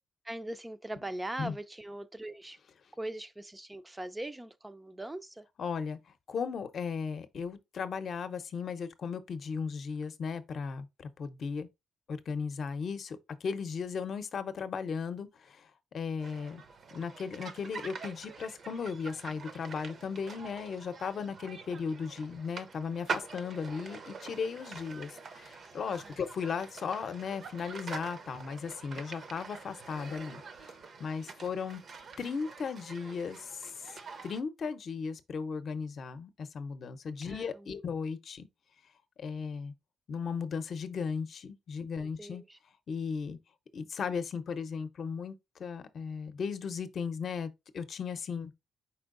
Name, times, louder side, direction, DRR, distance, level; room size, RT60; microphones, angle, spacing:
voice 1, 0.2-2.6 3.0-5.5 26.0-26.2 37.2-37.8 42.2-42.6, right 1 dB, 15° right, 0.4 m, -41 dB
voice 2, 5.6-6.0 6.3-11.7 12.1-16.6 16.9-30.4 31.0-31.8 32.2-33.7 34.2-38.5 39.2-39.7 40.1-42.4 42.9-43.4 43.7-48.6, left 5 dB, 55° left, 0.7 m, -36 dB
sound 1, 16.2-34.4, right 5 dB, 50° right, 0.7 m, -45 dB
4.5 x 4.3 x 2.5 m
cardioid pair, 90°, 0 cm